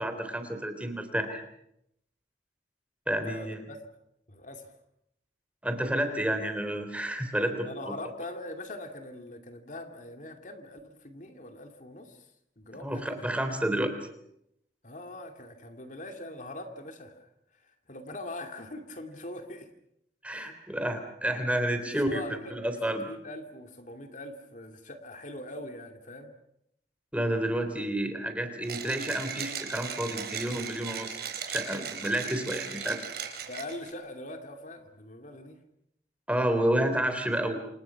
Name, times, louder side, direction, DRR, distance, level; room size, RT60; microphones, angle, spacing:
voice 1, 0.0-1.4 3.1-3.6 5.6-7.9 12.8-13.9 20.2-22.2 22.5-23.0 27.1-31.2 31.5-33.0 36.3-37.6, right 1 dB, 10° right, 7 dB, 3.5 m, -30 dB
voice 2, 3.2-3.8 4.3-4.7 7.6-12.3 12.6-13.4 14.8-19.7 20.3-20.5 21.7-22.6 23.0-26.3 33.5-35.6, left 1 dB, 45° left, 5 dB, 2.6 m, -42 dB
Mechanisms, 28.6-33.9, right 7 dB, 60° right, 4.8 m, -37 dB
28.5 x 27.5 x 6.0 m, 0.76 s
head